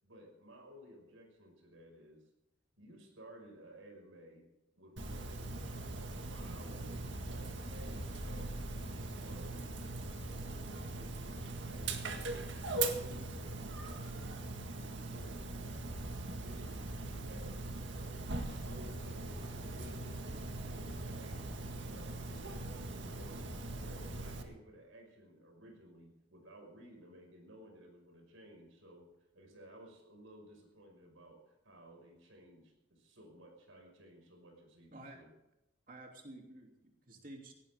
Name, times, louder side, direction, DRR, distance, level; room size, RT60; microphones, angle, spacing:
voice 1, 0.0-2.3 2.8-4.5 4.7-9.8 10.2-14.3 14.7-16.0 16.4-29.1 29.3-35.3, right 1 dB, 85° right, 3 dB, 5.8 m, -56 dB
Dog, 5.0-24.4, right 2 dB, 65° right, 1.9 m, -41 dB
voice 2, 35.9-37.5, right 1 dB, 45° right, 2 dB, 3.1 m, -51 dB
18.0 x 17.5 x 3.7 m, 0.90 s
head